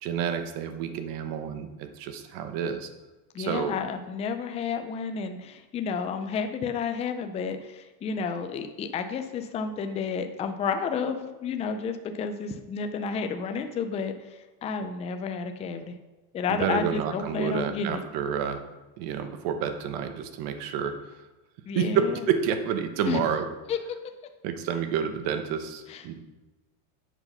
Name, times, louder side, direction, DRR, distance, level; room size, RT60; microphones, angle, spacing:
voice 1, 0.0-2.9 3.4-3.8 16.5-18.6 19.0-21.2 21.7-23.5 24.4-26.2, right 7 dB, 55° right, 8 dB, 1.2 m, -29 dB
voice 2, 3.3-14.1 14.6-15.9 16.3-18.0 21.7-22.2 23.1-23.2 23.7-23.8 25.9-26.0, left 5 dB, 15° left, 7 dB, 0.4 m, -31 dB
8.1 x 5.7 x 5.6 m, 1.1 s
supercardioid pair, 145°, 45 cm